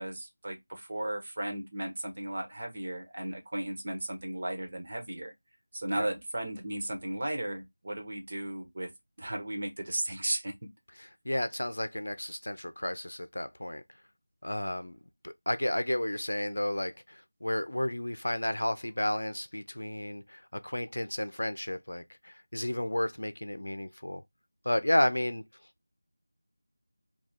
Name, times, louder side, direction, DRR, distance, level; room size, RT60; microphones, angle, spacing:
voice 1, 0.0-5.3 5.7-8.9 9.2-10.5, right 1 dB, 45° right, 1.2 m, -35 dB
voice 2, 11.2-13.8 14.4-15.0 15.2-24.2 24.6-25.4, left 1 dB, 70° left, 0.5 m, -32 dB
3.5 x 2.3 x 4.1 m
figure-of-eight pair, 170°, 0 cm